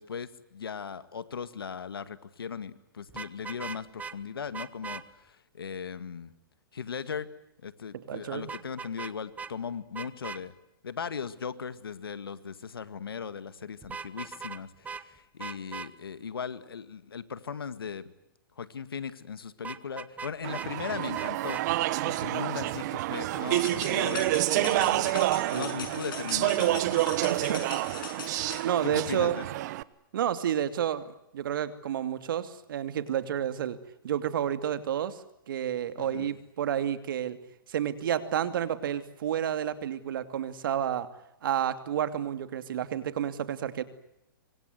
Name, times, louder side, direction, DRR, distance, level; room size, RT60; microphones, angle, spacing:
voice 1, 0.0-6.3 6.7-7.3 7.6-10.5 10.8-18.1 18.6-21.6 22.0-25.1 25.5-27.7 28.8-29.5 36.0-36.3, left 6 dB, 90° left, 13 dB, 2.0 m, -38 dB
Vehicle horn car horn honking, 3.1-4.1 4.5-5.0 8.5-9.1 9.4-9.5 9.9-10.4 13.8-14.6 14.8-15.0 15.4-15.9 19.6-20.7 21.1-21.6, right 5 dB, 10° right, 1.1 m, -39 dB
voice 2, 8.1-8.5 25.5-25.7 27.3-27.7 28.6-29.4 30.1-33.8 34.0-35.2 35.5-37.4 37.7-41.1 41.4-43.8, right 10 dB, 65° right, 10 dB, 2.6 m, -30 dB
Speech / Chatter, 20.4-29.8, right 16 dB, 50° right, 1.2 m, -28 dB
sound 1, 23.5-28.6, left 7 dB, 70° left, 6.8 m, -40 dB
26.0 x 25.0 x 8.0 m, 0.84 s
hypercardioid pair, 130°, 12 cm